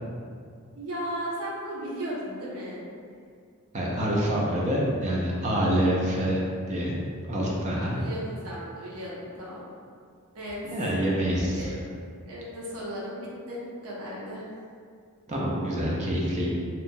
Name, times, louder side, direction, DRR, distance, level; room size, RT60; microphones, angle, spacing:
voice 1, 0.7-2.8 7.7-9.6 10.3-10.6 11.5-11.8 12.3-14.6, equal, 80° right, -6 dB, 0.7 m, -36 dB
voice 2, 3.7-6.4 6.7-7.0 7.3-8.0 10.7-11.7 15.3-16.5, equal, 30° right, -4 dB, 0.4 m, -26 dB
2.8 x 2.1 x 2.6 m, 2.2 s
head